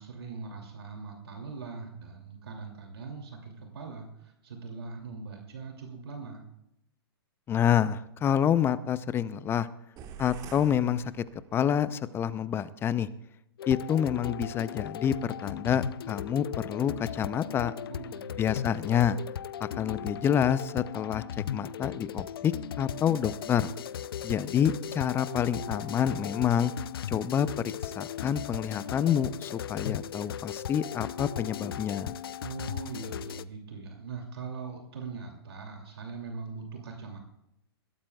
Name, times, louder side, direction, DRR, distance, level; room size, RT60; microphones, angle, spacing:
voice 1, 0.0-6.4 17.9-18.5 32.4-37.2, right 4 dB, 70° right, 2 dB, 2.7 m, -41 dB
voice 2, 7.5-9.7 10.2-11.2 11.5-13.1 13.7-17.7 18.4-19.2 19.8-21.2 21.5-23.7 24.2-26.7 27.1-27.5 27.8-32.1, left 9 dB, 15° left, 16 dB, 0.6 m, -28 dB
sound 1, 10.0-11.8, right 7 dB, 30° right, 1.5 m, -46 dB
sound 2, 13.6-33.4, left 9 dB, 65° left, 0.6 m, -37 dB
21.0 x 16.5 x 2.4 m, 0.83 s
hypercardioid pair, 120°, 13 cm